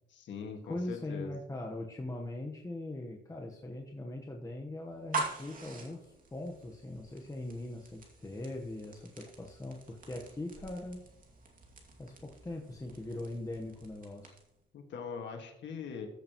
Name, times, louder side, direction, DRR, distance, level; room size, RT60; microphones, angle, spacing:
voice 1, 0.1-1.4 14.7-16.1, left 6 dB, 70° left, 3 dB, 1.8 m, -42 dB
voice 2, 0.7-11.0 12.0-14.3, left 1 dB, 15° left, 0 dB, 1.2 m, -41 dB
sound 1, 4.9-14.6, right 3 dB, 45° right, 2.4 m, -44 dB
14.5 x 6.7 x 3.0 m, 0.82 s
cardioid pair, 90°, 20 cm